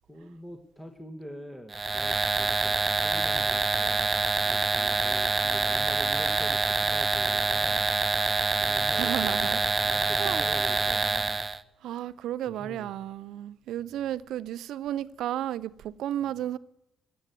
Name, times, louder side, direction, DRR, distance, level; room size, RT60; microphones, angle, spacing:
voice 1, 0.1-7.9 8.6-11.4 12.5-12.9 16.2-16.4, equal, 5° left, 1.3 m, -44 dB
sound 1, 1.7-11.6, right 3 dB, 25° right, 0.6 m, -26 dB
voice 2, 8.9-9.6 10.2-10.4 11.8-16.6, right 12 dB, 80° right, 0.5 m, -33 dB
15.5 x 7.9 x 8.9 m
cardioid pair, 90°, 0 cm